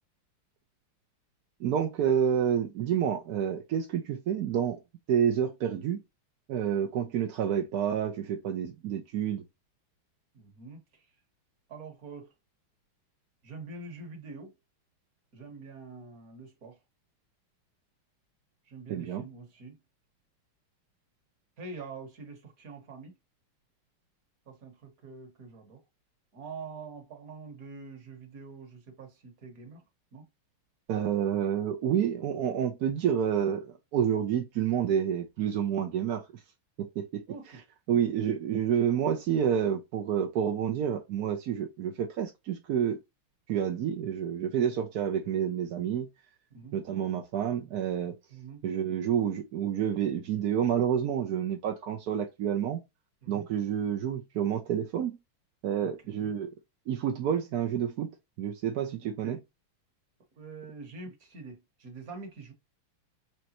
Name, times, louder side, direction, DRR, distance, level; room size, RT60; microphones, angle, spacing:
voice 1, 1.6-4.8 5.1-6.0 6.5-9.4 18.9-19.2 30.9-36.2 36.8-37.2 37.9-43.0 43.5-46.1 46.7-48.2 48.6-52.8 53.3-55.1 55.6-56.5 56.9-58.1 58.4-59.4, right 9 dB, 65° right, 0.9 m, -29 dB
voice 2, 10.3-11.1 11.7-12.3 13.4-14.5 15.3-16.8 18.7-19.8 21.6-23.1 24.5-25.8 26.3-29.8 30.1-30.3 37.3-37.6 37.9-38.0 46.5-46.7 48.3-48.6 53.2-53.5 55.8-55.9 56.2-56.3 59.0-59.4 60.4-62.5, right 4 dB, 45° right, 1.5 m, -45 dB
5.2 x 3.3 x 2.9 m
omnidirectional pair, 2.4 m